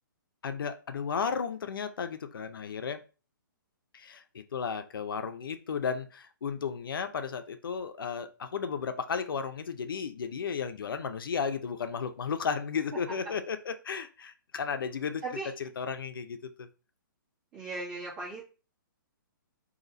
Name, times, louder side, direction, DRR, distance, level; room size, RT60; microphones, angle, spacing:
voice 1, 0.4-3.0 3.9-15.2 15.6-16.7, left 6 dB, 80° left, 9 dB, 0.7 m, -34 dB
voice 2, 17.5-18.4, right 2 dB, 25° right, -7 dB, 2.3 m, -37 dB
3.9 x 2.9 x 4.1 m, 0.34 s
hypercardioid pair, 175°, 11 cm